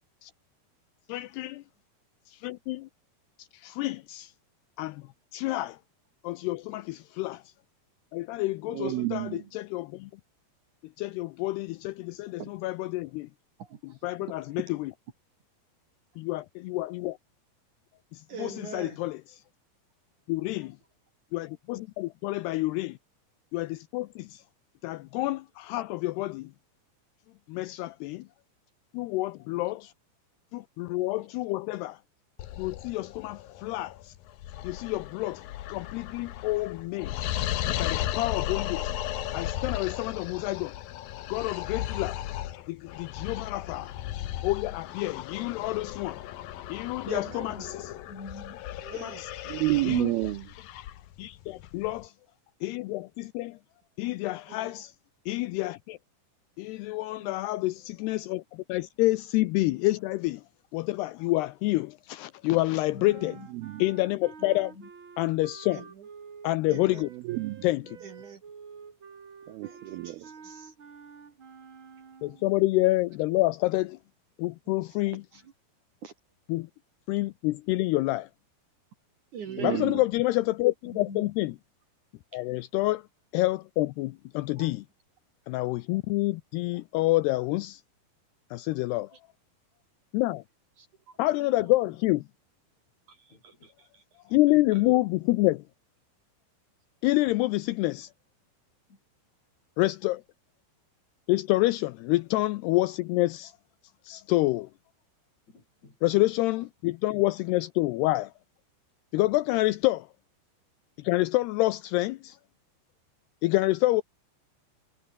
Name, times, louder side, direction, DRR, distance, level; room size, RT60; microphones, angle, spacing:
voice 1, 1.1-1.6 2.3-2.9 3.6-4.3 4.8-5.0 5.3-5.8 6.2-7.4 8.1-10.1 11.0-13.3 14.0-14.9 16.3-17.2 18.1-19.2 20.3-20.8 21.3-23.0 23.5-24.4 24.8-26.5 27.5-28.3 28.9-29.9 30.5-32.0 32.6-34.1 34.6-35.4 35.7-37.3 37.8-38.9 39.3-40.7 41.3-42.2 42.7-44.0 44.4-46.2 46.7-47.7 49.0-49.3 49.9-50.1 51.2-52.1 52.6-53.6 54.0-54.9 55.3-56.0 56.6-60.4 60.7-63.3 63.8-64.7 65.2-65.9 66.4-67.1 67.6-68.0 72.2-74.0 74.4-75.2 76.5-76.7 77.1-78.3 79.6-81.5 82.3-83.0 83.3-84.8 85.5-87.8 88.5-89.1 90.1-90.4 91.2-92.2 94.3-95.6 97.0-98.1 99.8-100.2 101.3-103.5 104.1-104.7 106.0-108.3 109.1-110.1 111.0-112.4 113.4-114.0, left 19 dB, 80° left, 2.5 m, -28 dB
voice 2, 8.7-9.4 49.5-50.5 63.5-63.8 67.1-67.7 69.5-70.3 79.5-80.0, right 19 dB, 85° right, 2.2 m, -30 dB
voice 3, 13.6-14.0 18.3-19.0 47.0-47.7 48.8-49.2 54.5-54.7 65.7-66.0 66.7-67.1 68.0-68.4 69.6-70.7 75.1-75.5 76.0-76.1 79.3-79.9 82.3-82.4 84.6-84.7 90.8-91.2 93.1-94.0 94.7-94.8, right 7 dB, 55° right, 2.9 m, -43 dB
sound 1, 32.4-52.1, left 13 dB, 65° left, 2.6 m, -36 dB
voice 4, 48.1-48.6 57.2-57.7 62.9-63.5 64.4-64.9 80.8-81.3 91.5-91.9 93.3-93.7 98.9-99.0 105.5-106.0, left 3 dB, 40° left, 8.0 m, -46 dB
sound 2, 63.0-72.6, right 5 dB, 35° right, 2.7 m, -49 dB
omnidirectional pair, 5.1 m